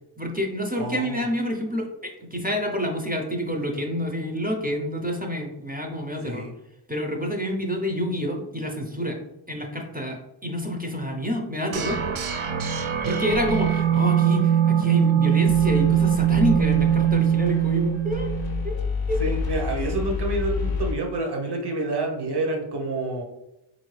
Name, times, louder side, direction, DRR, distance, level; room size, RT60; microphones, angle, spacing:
voice 1, 0.2-6.5 6.9-9.2 9.5-12.0 13.0-18.4 18.6-18.8 19.1-19.4, equal, 20° right, 1 dB, 0.6 m, -28 dB
voice 2, 0.8-1.2 6.2-6.5 13.0-13.2 19.2-23.2, right 2 dB, 55° right, 0 dB, 0.9 m, -28 dB
sound 1, 11.7-18.7, right 9 dB, 85° right, 0.6 m, -22 dB
sound 2, 13.3-14.0 15.5-21.0, left 4 dB, 50° left, 0.5 m, -30 dB
4.0 x 2.6 x 3.2 m, 0.89 s
wide cardioid pair, 65°, 48 cm